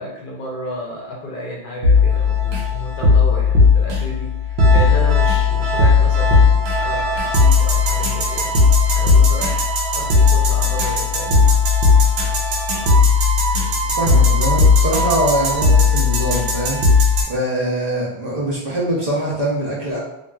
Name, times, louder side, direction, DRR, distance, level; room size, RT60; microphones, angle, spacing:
voice 1, 0.0-8.5 8.9-11.6, left 1 dB, 60° left, -2 dB, 0.7 m, -32 dB
sound 1, 1.8-17.2, left 4 dB, 90° right, 0.9 m, -16 dB
voice 2, 14.0-20.0, right 1 dB, 45° right, -6 dB, 0.7 m, -23 dB
2.8 x 2.5 x 2.2 m, 0.85 s
omnidirectional pair, 1.0 m